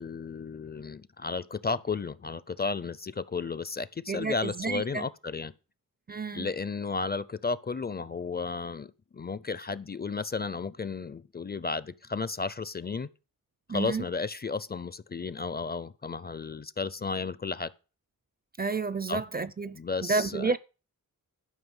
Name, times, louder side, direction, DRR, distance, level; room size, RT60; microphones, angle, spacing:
voice 1, 0.0-5.5 6.1-13.1 13.7-17.7 19.1-19.2 19.7-20.6, left 4 dB, 30° left, 0.5 m, -33 dB
voice 2, 4.1-5.0 6.1-6.5 13.7-14.0 18.6-20.6, right 4 dB, 30° right, 0.4 m, -31 dB
11.5 x 5.6 x 7.1 m
wide cardioid pair, 130°, 34 cm